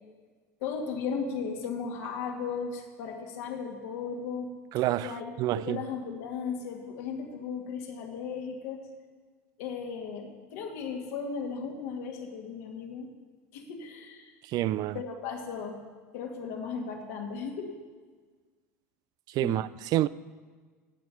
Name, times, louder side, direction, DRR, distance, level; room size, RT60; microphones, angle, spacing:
voice 1, 0.6-4.5 5.0-5.3 5.6-8.8 9.6-13.1 13.5-14.3 14.9-15.8 16.1-17.8 19.4-19.6, left 6 dB, 65° left, 2.2 m, -36 dB
voice 2, 4.7-5.8 14.5-15.0 19.3-20.1, right 14 dB, 50° right, 0.4 m, -28 dB
17.0 x 6.1 x 7.0 m
hypercardioid pair, 80°, 8 cm